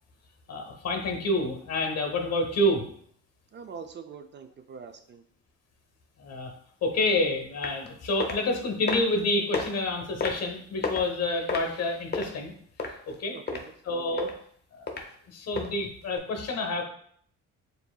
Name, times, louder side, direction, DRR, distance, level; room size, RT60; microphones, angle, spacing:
voice 1, 0.5-2.8 6.2-6.5 6.8-12.5 13.1-13.4 13.8-14.3 14.8-14.9 15.3-16.8, left 1 dB, 55° left, 3 dB, 1.0 m, -28 dB
voice 2, 3.5-5.2 13.3-13.7 14.1-14.3, right 6 dB, 40° right, 7 dB, 0.4 m, -43 dB
sound 1, 7.6-7.9 8.2-8.4 8.9-9.2 9.5-9.6 10.2-10.5 10.8-11.1 11.5-12.3 12.8-13.1 13.5-13.6 14.2-14.3 14.9-15.0 15.6-15.7 16.2-16.3, left 4 dB, 35° left, 0.7 m, -30 dB
6.8 x 2.6 x 2.3 m, 0.63 s
cardioid pair, 90°, 30 cm